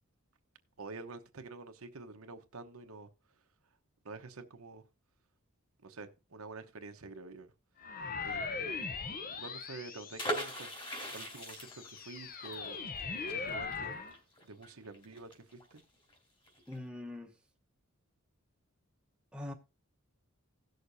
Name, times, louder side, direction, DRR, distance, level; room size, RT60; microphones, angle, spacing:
voice 1, 0.8-3.1 4.0-4.8 5.8-7.5 8.2-8.8 9.3-10.7 11.1-12.8 13.3-15.8, right 3 dB, 80° right, 1.0 m, -48 dB
sound 1, 7.8-10.7 11.3-14.2, left 4 dB, 45° left, 0.9 m, -40 dB
sound 2, 10.2-15.8 16.1-16.2 16.5-16.8, equal, 25° left, 3.3 m, -40 dB
voice 2, 16.7-17.3 19.3-19.5, left 1 dB, 5° right, 1.0 m, -42 dB
17.0 x 6.5 x 2.7 m
head